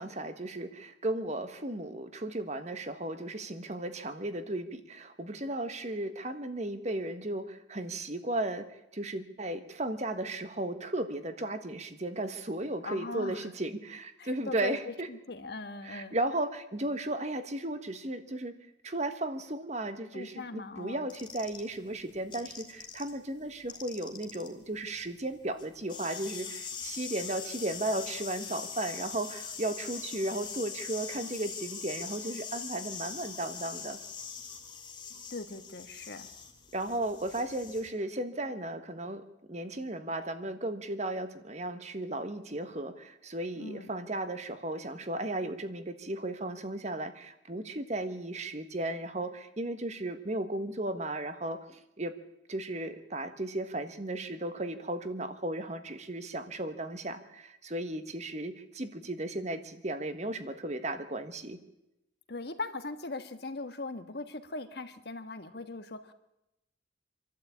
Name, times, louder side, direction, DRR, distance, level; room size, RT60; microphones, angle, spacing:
voice 1, 0.0-15.1 15.8-18.5 18.8-34.0 36.7-52.1 52.5-61.6, right 1 dB, 40° right, 9 dB, 1.4 m, -35 dB
voice 2, 12.8-13.5 14.2-16.2 20.1-21.1 35.3-36.3 43.5-43.9 62.3-66.1, left 3 dB, 60° left, 9 dB, 1.4 m, -40 dB
sound 1, 21.1-23.1 23.4-37.9, left 6 dB, 25° left, 2.6 m, -42 dB
26.0 x 12.0 x 8.6 m, 0.89 s
head